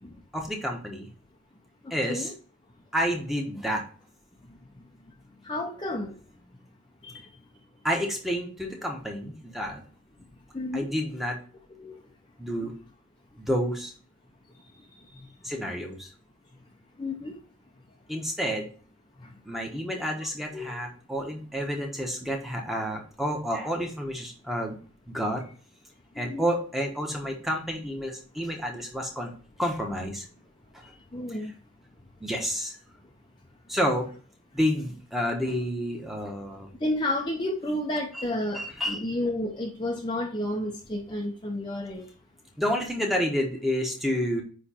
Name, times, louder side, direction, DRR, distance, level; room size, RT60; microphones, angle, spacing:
voice 1, 0.3-1.1 1.9-2.3 2.9-3.8 7.8-9.8 10.7-11.4 12.4-12.7 13.4-13.9 15.4-16.1 18.1-18.7 19.5-24.8 25.1-25.4 26.2-29.3 29.6-30.3 32.2-32.8 33.7-34.1 34.5-36.7 38.5-39.0 42.6-44.4, equal, ahead, 1 dB, 1.1 m, -29 dB
voice 2, 1.8-2.3 5.4-6.1 7.0-7.2 10.5-10.9 11.8-11.9 12.6-12.7 17.0-17.4 19.2-19.3 20.5-20.8 26.2-26.5 31.1-31.5 36.8-42.1, left 1 dB, 20° left, 0 dB, 0.7 m, -31 dB
9.6 x 3.2 x 4.3 m, 0.41 s
head